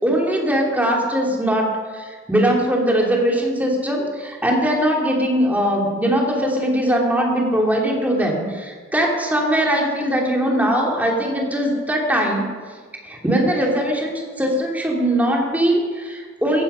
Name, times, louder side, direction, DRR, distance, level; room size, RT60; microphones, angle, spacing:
voice 1, 0.0-12.4 13.0-16.6, equal, 10° right, -1 dB, 2.9 m, -20 dB
15.5 x 15.0 x 5.7 m, 1.6 s
head